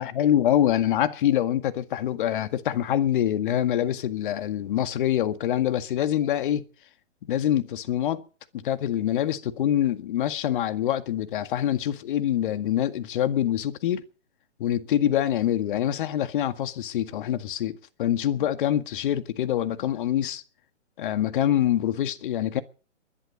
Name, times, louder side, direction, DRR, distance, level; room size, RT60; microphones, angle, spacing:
voice 1, 0.0-6.6 7.3-8.2 8.5-14.0 14.6-20.4 21.0-22.6, left 11 dB, 45° left, 1.9 m, -25 dB
21.5 x 12.0 x 5.3 m
figure-of-eight pair, 130°, 36 cm